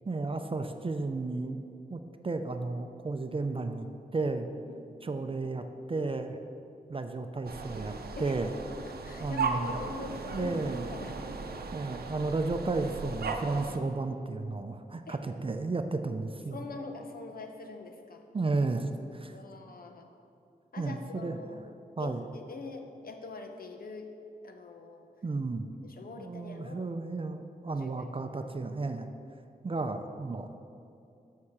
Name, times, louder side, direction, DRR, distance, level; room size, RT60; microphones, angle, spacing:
voice 1, 0.1-1.6 1.9-4.5 5.0-6.4 6.9-8.5 9.2-9.8 10.3-10.9 11.7-16.6 18.3-19.4 20.8-21.4 22.0-22.3 25.2-25.7 26.2-29.1 29.6-30.7, right 3 dB, 35° right, 7 dB, 0.5 m, -33 dB
sound 1, 7.5-13.8, right 4 dB, 80° right, 0.6 m, -37 dB
voice 2, 8.7-10.6 10.9-11.1 15.1-15.2 16.5-18.2 19.3-20.1 20.7-21.6 22.0-24.1 24.4-25.1 25.8-26.9 27.8-28.3, left 3 dB, 70° left, 4 dB, 0.9 m, -44 dB
6.5 x 6.5 x 7.2 m, 2.6 s
wide cardioid pair, 75°, 16 cm